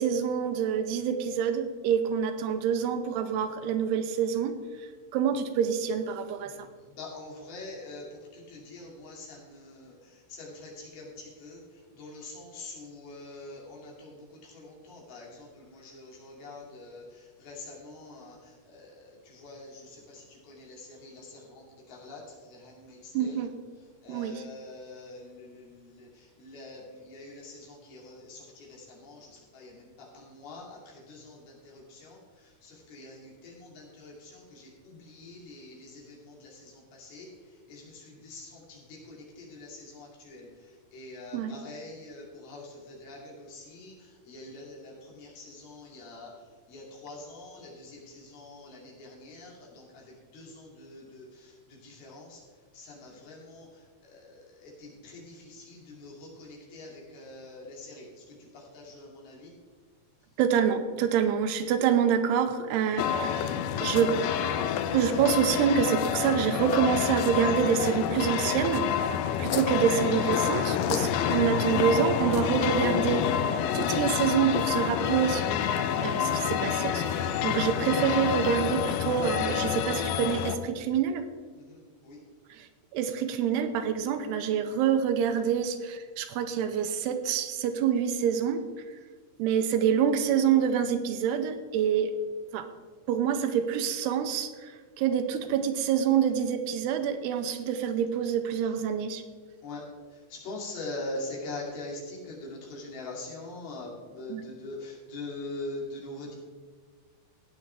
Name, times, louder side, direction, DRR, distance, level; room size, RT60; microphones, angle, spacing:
voice 1, 0.0-4.6 5.1-6.7 23.1-23.5 24.1-24.4 41.3-41.6 60.4-63.5 63.8-64.2 64.9-68.9 69.4-75.4 76.0-81.3 82.6-82.7 82.9-88.6 89.4-92.1 92.5-92.7 93.1-94.7 95.0-99.2 104.3-104.4, right 8 dB, 85° right, 8 dB, 2.7 m, -26 dB
voice 2, 6.9-8.1 8.3-11.6 12.0-23.4 24.0-37.3 37.7-46.3 46.7-52.4 52.7-59.5 81.5-82.2 99.6-99.8 100.1-106.4, left 2 dB, 70° left, -3 dB, 4.3 m, -44 dB
sound 1, 63.0-80.6, left 9 dB, 85° left, 2.1 m, -28 dB
16.0 x 9.0 x 3.4 m, 1.5 s
omnidirectional pair, 4.7 m